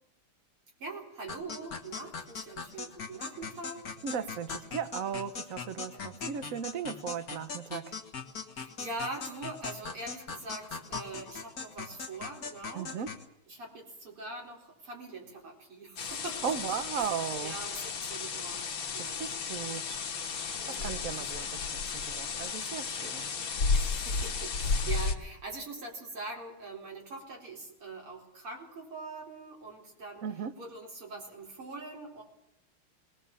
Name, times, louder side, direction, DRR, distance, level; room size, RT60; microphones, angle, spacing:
voice 1, 0.8-3.8 5.9-6.4 8.5-12.9 13.5-17.1 17.4-18.7 18.9-19.2 20.5-21.3 23.7-30.2 30.5-32.2, right 2 dB, 75° right, -1 dB, 5.1 m, -43 dB
sound 1, 1.3-13.3, left 5 dB, 45° left, 1.8 m, -41 dB
voice 2, 4.0-8.0 12.7-13.1 16.4-17.6 19.0-20.1 20.7-23.3 30.2-30.5, right 7 dB, 50° right, 11 dB, 1.0 m, -37 dB
sound 2, 16.0-25.1, left 4 dB, 65° left, 2.2 m, -33 dB
20.5 x 19.0 x 7.1 m, 0.84 s
omnidirectional pair, 2.4 m